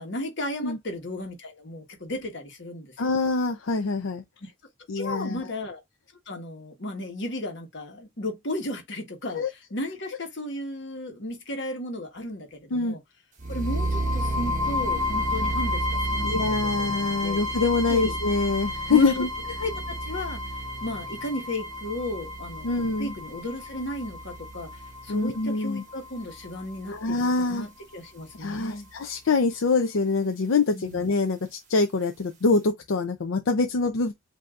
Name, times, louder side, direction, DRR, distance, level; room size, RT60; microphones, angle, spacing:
voice 1, 0.0-3.1 4.4-4.5 4.9-5.8 6.3-13.0 13.5-17.4 17.9-18.2 18.9-19.3 19.6-20.4 20.8-28.9 30.7-31.0, left 1 dB, 60° left, 1.3 m, -34 dB
voice 2, 3.0-4.2 4.9-5.4 9.3-9.5 12.7-13.0 16.2-19.3 22.6-23.1 25.1-25.8 26.9-27.7 28.4-34.1, left 3 dB, 75° left, 0.5 m, -25 dB
sound 1, 13.4-27.4, left 1 dB, 40° right, 1.2 m, -31 dB
7.6 x 2.7 x 2.4 m
head